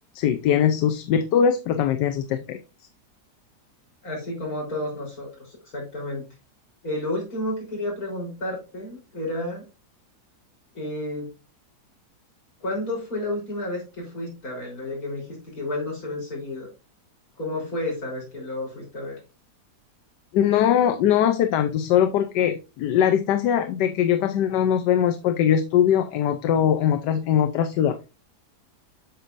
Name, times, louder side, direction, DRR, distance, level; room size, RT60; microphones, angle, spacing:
voice 1, 0.1-2.6 20.3-28.0, left 9 dB, 85° left, 1.3 m, -21 dB
voice 2, 4.0-6.3 6.8-9.6 10.7-11.3 12.6-16.7 17.4-19.2, left 1 dB, 55° left, 4.4 m, -31 dB
8.6 x 6.9 x 2.6 m
omnidirectional pair, 1.8 m